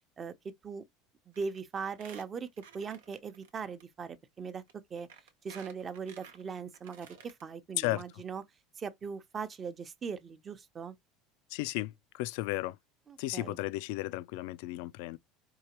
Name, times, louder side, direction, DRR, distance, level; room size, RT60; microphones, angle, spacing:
voice 1, 1.3-2.5 2.7-4.6 4.9-5.1 5.4-8.4 8.8-10.9 13.1-13.6, right 5 dB, 30° right, 0.7 m, -40 dB
Squeak, 1.3-1.6 1.9-3.5 3.8-3.9 4.7-4.8 5.1-7.4 7.8-7.9 8.1-8.2, right 7 dB, 85° right, 1.0 m, -53 dB
voice 2, 7.8-8.2 11.5-12.8 13.2-15.2, left 18 dB, 70° left, 0.3 m, -34 dB
4.7 x 2.8 x 2.9 m
supercardioid pair, 95°, 0 cm